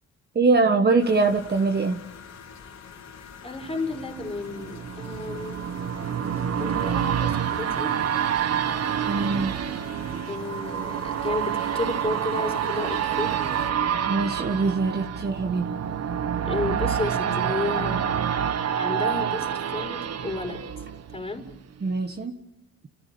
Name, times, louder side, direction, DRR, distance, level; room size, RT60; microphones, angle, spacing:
voice 1, 0.3-2.0 9.1-9.5 14.1-15.7 21.8-22.4, right 3 dB, 35° right, 4 dB, 1.6 m, -23 dB
sound 1, 1.0-13.7, left 6 dB, 65° left, 3.8 m, -45 dB
voice 2, 3.4-5.7 6.6-7.9 10.3-13.4 16.4-18.0 18.8-20.8 21.1-21.5, left 3 dB, 20° left, 4 dB, 4.4 m, -32 dB
sound 2, 3.7-21.5 21.9-22.0, right 8 dB, 55° right, 1.4 m, -28 dB
30.0 x 14.5 x 8.8 m, 0.98 s
cardioid pair, 90°, 30 cm